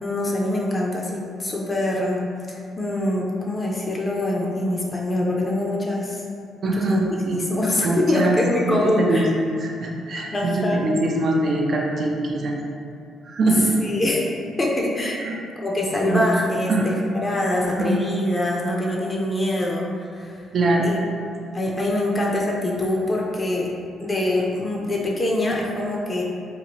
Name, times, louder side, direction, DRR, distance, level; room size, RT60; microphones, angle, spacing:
voice 1, 0.0-2.2 2.5-6.2 6.6-7.0 7.3-9.3 10.3-10.8 13.8-14.2 14.6-15.2 15.6-16.9 17.2-19.9 20.1-20.4 20.8-21.0 21.5-23.7 24.0-26.2, left 1 dB, 25° left, -3 dB, 0.5 m, -24 dB
voice 2, 6.6-7.4 7.8-8.4 8.7-9.3 9.6-12.6 13.2-13.7 15.2-15.4 16.1-16.2 16.7-16.9 17.6-18.0 20.5-20.9, right 2 dB, 55° right, 0 dB, 0.4 m, -23 dB
2.9 x 2.4 x 2.8 m, 2.5 s
cardioid pair, 90°, 0 cm